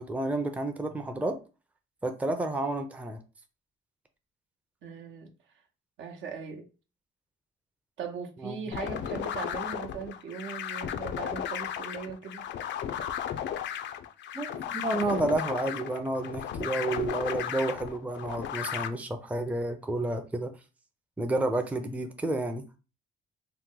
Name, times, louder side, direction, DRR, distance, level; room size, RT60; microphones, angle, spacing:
voice 1, 0.0-1.4 2.0-3.2 8.4-8.6 14.3-20.5 21.2-22.6, right 2 dB, 5° right, 0.4 m, -30 dB
voice 2, 4.8-5.3 6.0-6.7 8.0-12.4, right 5 dB, 75° right, 0.8 m, -39 dB
sound 1, 8.7-18.9, left 9 dB, 65° left, 0.4 m, -35 dB
3.0 x 2.1 x 3.7 m
cardioid pair, 90°, 20 cm